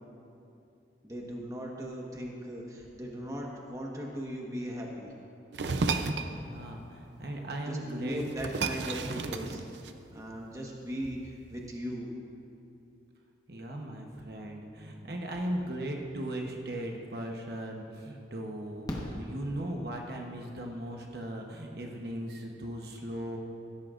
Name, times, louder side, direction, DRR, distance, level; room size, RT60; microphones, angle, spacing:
voice 1, 1.0-5.1 7.7-9.6 10.1-12.1, equal, 20° right, -2 dB, 1.3 m, -38 dB
sound 1, 5.5-6.3 7.7-7.8 8.1-10.2, right 4 dB, 80° right, 0.6 m, -32 dB
voice 2, 6.3-8.3 13.5-23.4, right 1 dB, 60° right, 1 dB, 1.0 m, -38 dB
Fireworks, 17.2-17.3 18.9-20.2 21.9-22.0 22.2-22.3, equal, 20° left, 1.2 m, -39 dB
17.0 x 13.0 x 2.5 m, 2.6 s
head